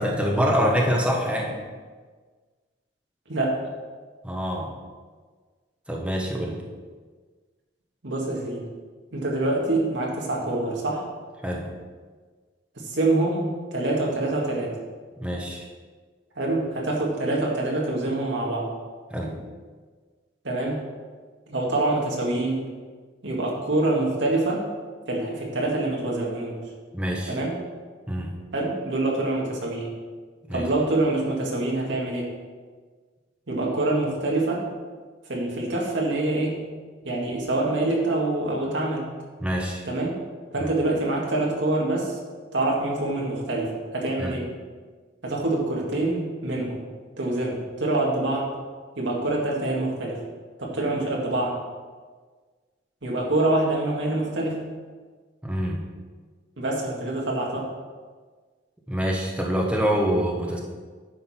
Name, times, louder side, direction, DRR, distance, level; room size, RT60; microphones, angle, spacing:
voice 1, 0.0-1.6 4.2-4.7 5.9-6.6 11.4-11.7 15.2-15.7 19.1-19.4 26.9-27.4 28.1-28.3 30.5-30.7 39.4-39.8 40.6-40.7 44.2-44.3 55.4-55.8 58.9-60.6, equal, 5° right, -2 dB, 1.1 m, -25 dB
voice 2, 3.3-3.6 8.0-8.7 9.1-11.0 12.8-14.8 16.4-18.7 20.4-20.8 21.5-22.7 23.2-24.7 25.1-26.6 27.3-27.6 28.5-29.9 30.5-32.4 33.5-34.6 35.3-36.7 37.0-39.1 39.8-40.2 40.5-42.2 42.5-44.5 45.2-46.8 47.2-48.5 49.0-50.2 50.6-51.6 53.0-54.7 56.6-57.7, right 2 dB, 90° right, -2 dB, 2.0 m, -25 dB
9.7 x 6.4 x 4.4 m, 1.5 s
head